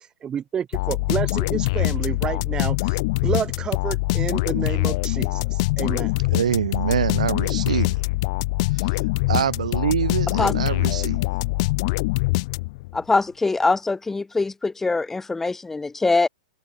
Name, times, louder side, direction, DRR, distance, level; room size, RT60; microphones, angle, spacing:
voice 1, 0.2-6.1, right 8 dB, 20° right, 2.9 m, -29 dB
sound 1, 0.7-13.0, left 24 dB, 50° left, 0.8 m, -23 dB
voice 2, 6.3-8.0 8.7-9.0 9.3-11.2, right 8 dB, 80° right, 1.0 m, -25 dB
voice 3, 12.9-16.3, left 3 dB, 10° left, 1.2 m, -23 dB
hypercardioid pair, 120°, 4 cm